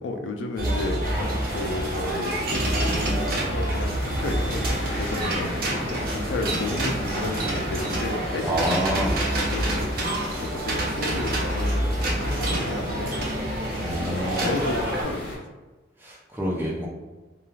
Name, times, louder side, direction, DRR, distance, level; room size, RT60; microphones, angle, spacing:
voice 1, 0.0-4.6 5.0-5.5 5.9-8.8 9.5-10.1 10.4-13.1 14.0-15.3, left 2 dB, 90° left, 5 dB, 0.4 m, -32 dB
sound 1, 0.6-15.0, right 1 dB, 55° right, 0.6 m, -27 dB
sound 2, 1.0-15.4, left 1 dB, 75° left, 0.9 m, -36 dB
voice 2, 8.4-9.2 13.8-14.5 16.0-16.9, equal, 10° right, -4 dB, 0.5 m, -27 dB
2.3 x 2.2 x 3.1 m, 1.2 s
head